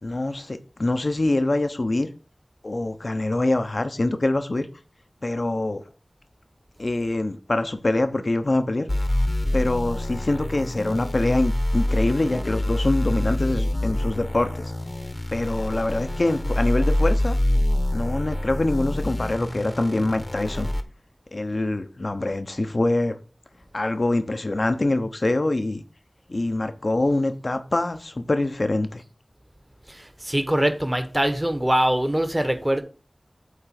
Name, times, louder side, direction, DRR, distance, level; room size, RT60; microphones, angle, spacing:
voice 1, 0.0-2.1 2.6-4.7 5.2-5.8 6.8-8.9 9.5-14.6 15.3-17.3 17.9-20.7 21.3-23.2 23.7-25.8 26.3-29.0, left 2 dB, 60° left, 1.0 m, -24 dB
sound 1, 8.9-20.8, left 1 dB, 30° left, 1.1 m, -26 dB
voice 2, 29.9-32.8, right 1 dB, 20° right, 1.3 m, -23 dB
8.4 x 4.0 x 5.9 m
wide cardioid pair, 40°, 0 cm